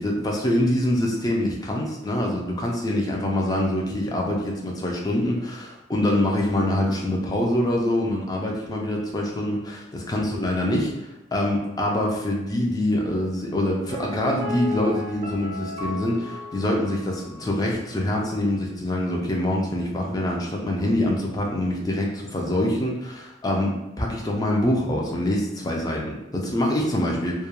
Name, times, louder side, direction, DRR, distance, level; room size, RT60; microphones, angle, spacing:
voice 1, 0.0-10.9 11.3-27.3, left 1 dB, 20° left, -1 dB, 0.3 m, -25 dB
Piano, 13.9-17.7 17.9-18.0, left 3 dB, 45° right, 0.5 m, -36 dB
2.3 x 2.2 x 2.9 m, 0.95 s
head